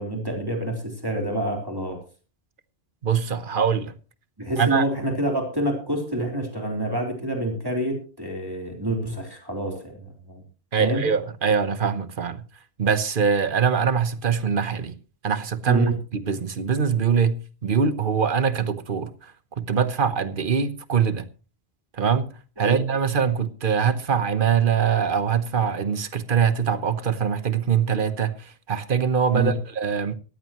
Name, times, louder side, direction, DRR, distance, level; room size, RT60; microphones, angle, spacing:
voice 1, 0.0-2.0 4.4-10.4 10.8-11.0 15.7-15.9 22.6-22.8 29.3-29.6, right 1 dB, 20° right, 3.7 m, -27 dB
voice 2, 3.0-3.9 4.6-4.8 10.7-12.4 12.8-14.9 15.2-15.9 16.1-21.2 21.9-22.3 22.6-30.1, right 6 dB, 55° right, 1.1 m, -23 dB
18.5 x 14.0 x 3.0 m
omnidirectional pair, 1.0 m